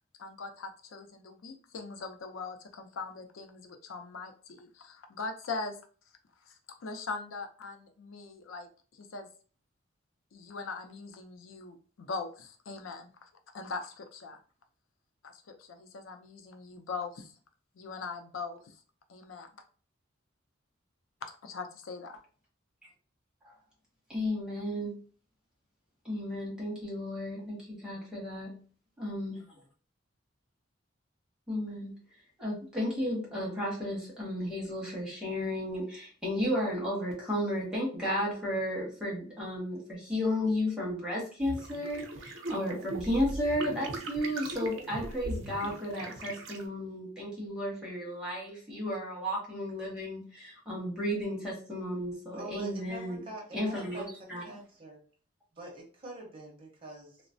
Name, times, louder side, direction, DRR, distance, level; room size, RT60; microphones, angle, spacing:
voice 1, 0.2-5.8 6.4-6.6 6.8-9.3 10.3-14.4 15.2-17.3 17.8-18.8 19.1-19.5 21.4-22.2, left 4 dB, 85° left, 6 dB, 0.5 m, -41 dB
voice 2, 24.1-25.0 26.0-28.6 29.0-29.4 31.5-32.0 32.4-53.2 53.5-54.4, left 1 dB, 5° right, -5 dB, 1.1 m, -33 dB
sound 1, 41.4-46.6, right 2 dB, 80° right, 0.5 m, -39 dB
voice 3, 52.3-54.1 54.4-55.0 55.5-57.2, right 2 dB, 30° right, -1 dB, 0.8 m, -45 dB
3.0 x 2.0 x 2.5 m, 0.41 s
head